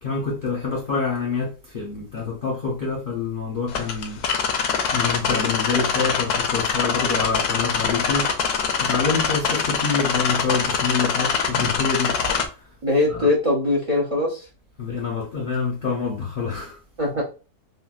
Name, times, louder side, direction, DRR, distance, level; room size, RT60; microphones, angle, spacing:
voice 1, 0.0-4.2 4.9-8.3 8.8-12.2 13.1-13.3 14.8-16.8, left 4 dB, 50° left, 0.6 m, -26 dB
sound 1, 3.7-12.5, left 6 dB, 80° left, 1.1 m, -23 dB
voice 2, 12.8-14.4 17.0-17.2, left 2 dB, 50° right, 0.4 m, -21 dB
3.7 x 2.2 x 2.3 m
omnidirectional pair, 1.6 m